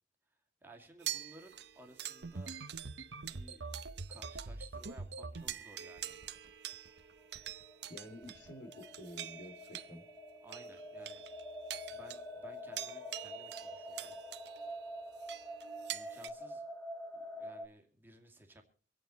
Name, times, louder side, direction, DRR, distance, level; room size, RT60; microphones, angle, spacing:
voice 1, 0.6-2.5 3.2-3.8 4.1-6.2 10.4-11.4 11.9-14.2 15.9-16.6 17.1-18.6, right 1 dB, 10° right, 2 dB, 2.2 m, -57 dB
sound 1, 1.0-4.6 4.8-5.0 5.3-16.3, right 12 dB, 65° right, 0.8 m, -46 dB
sound 2, 2.2-5.5 6.0-6.5 6.7-7.0 7.3-7.6 8.2-8.5, right 3 dB, 90° right, 1.0 m, -44 dB
sound 3, 7.4-17.7, equal, 15° left, 1.3 m, -47 dB
voice 2, 7.9-10.1, equal, 75° left, 6 dB, 3.1 m, -50 dB
25.0 x 9.2 x 4.4 m, 0.39 s
head